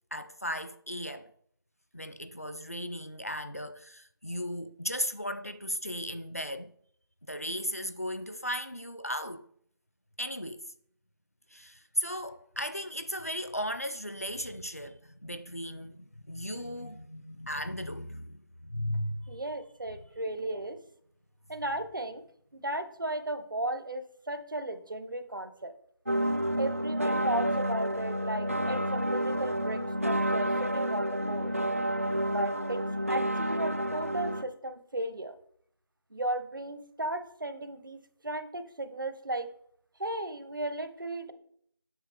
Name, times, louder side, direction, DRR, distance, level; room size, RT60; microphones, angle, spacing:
voice 1, 0.1-1.3 1.9-6.7 7.2-9.4 10.2-10.7 11.5-19.4, equal, 40° left, 0.4 m, -36 dB
voice 2, 19.3-20.8 21.5-22.2 22.5-25.7 26.6-31.5 32.3-32.8 33.1-35.3 36.1-39.5 40.0-41.3, right 1 dB, 55° right, 0.9 m, -35 dB
sound 1, 26.1-34.4, equal, 35° right, 0.4 m, -30 dB
7.9 x 6.0 x 3.4 m
figure-of-eight pair, 175°, 13 cm